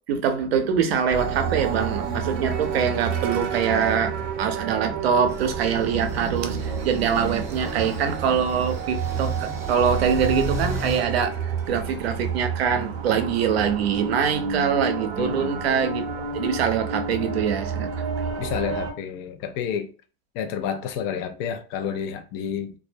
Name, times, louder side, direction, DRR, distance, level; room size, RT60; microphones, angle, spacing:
voice 1, 0.1-16.0 16.3-17.9, right 7 dB, 90° right, 0.6 m, -24 dB
sound 1, 1.1-18.9, right 6 dB, 50° right, 0.6 m, -30 dB
sound 2, 5.3-11.0, left 1 dB, 10° right, 0.5 m, -36 dB
voice 2, 15.2-15.7 18.4-19.9 20.3-22.7, left 8 dB, 45° left, 0.5 m, -30 dB
2.3 x 2.0 x 2.5 m
supercardioid pair, 120°, 30 cm